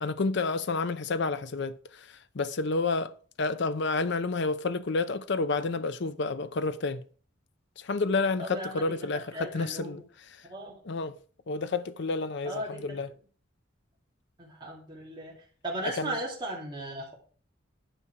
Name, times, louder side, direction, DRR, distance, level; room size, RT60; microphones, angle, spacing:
voice 1, 0.0-3.1 3.4-7.0 7.8-10.4 10.8-11.2 11.5-13.1 15.8-16.2, left 3 dB, 60° left, 0.6 m, -30 dB
voice 2, 8.4-9.0 9.3-10.0 10.5-10.7 12.4-13.0 14.4-15.3 15.6-17.1, right 1 dB, 25° right, 2.4 m, -36 dB
10.0 x 5.6 x 4.7 m
head